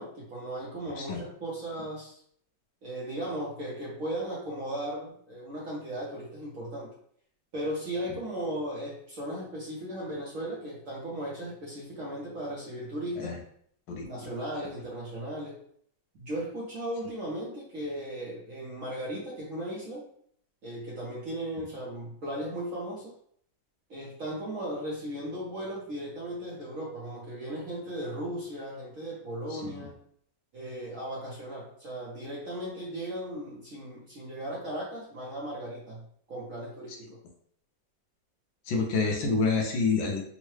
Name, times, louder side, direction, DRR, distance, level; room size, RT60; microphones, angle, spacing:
voice 1, 0.0-2.2 2.8-6.9 7.5-13.3 14.0-15.6 16.2-20.0 20.6-23.1 23.9-30.0 30.5-37.1, right 1 dB, 60° right, -6 dB, 0.9 m, -36 dB
voice 2, 38.7-40.2, left 4 dB, 75° left, 2 dB, 1.3 m, -27 dB
3.6 x 2.1 x 3.1 m, 0.64 s
omnidirectional pair, 2.1 m